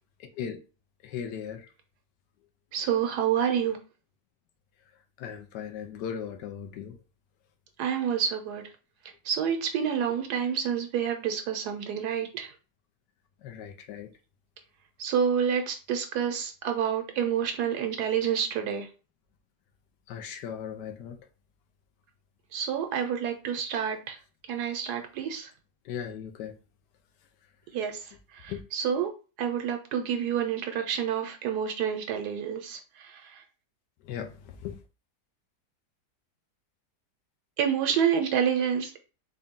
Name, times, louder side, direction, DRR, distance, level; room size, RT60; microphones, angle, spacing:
voice 1, 0.2-0.6 1.0-1.7 5.2-7.0 13.4-14.1 20.1-21.2 25.9-26.5 28.5-28.6 34.0-34.4 34.6-34.8, left 8 dB, 80° left, 1.3 m, -37 dB
voice 2, 2.7-3.8 7.8-8.6 9.3-12.5 15.0-18.9 22.5-24.2 24.5-25.5 27.7-28.0 28.4-29.1 29.4-32.8 37.6-39.0, right 8 dB, 75° right, 1.1 m, -28 dB
4.0 x 2.3 x 3.6 m
omnidirectional pair, 1.9 m